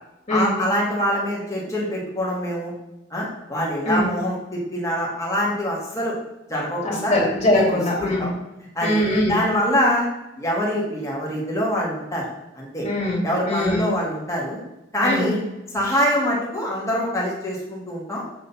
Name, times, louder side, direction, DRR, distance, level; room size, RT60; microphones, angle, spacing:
voice 1, 0.3-2.7 3.1-6.1 6.5-7.1 7.5-8.3 8.7-9.0 9.3-10.1 10.4-12.3 12.6-12.9 13.2-14.6 14.9-15.4 15.7-18.2, equal, 15° left, -4 dB, 2.2 m, -24 dB
voice 2, 7.1-8.3 8.8-9.3 12.8-13.2 13.5-13.8 15.0-15.3, left 1 dB, 30° left, -4 dB, 2.8 m, -21 dB
7.7 x 4.1 x 5.7 m, 0.98 s
head